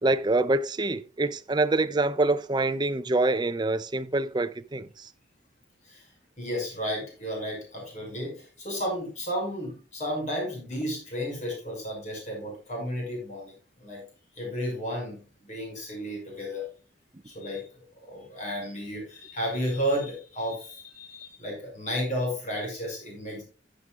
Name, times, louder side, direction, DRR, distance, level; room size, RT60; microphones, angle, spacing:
voice 1, 0.0-5.1, right 2 dB, 25° right, 0.5 m, -25 dB
voice 2, 6.4-13.5 13.8-14.0 14.3-16.7 17.2-17.7 18.0-23.4, equal, 40° left, 6.2 m, -33 dB
14.5 x 8.9 x 2.5 m
head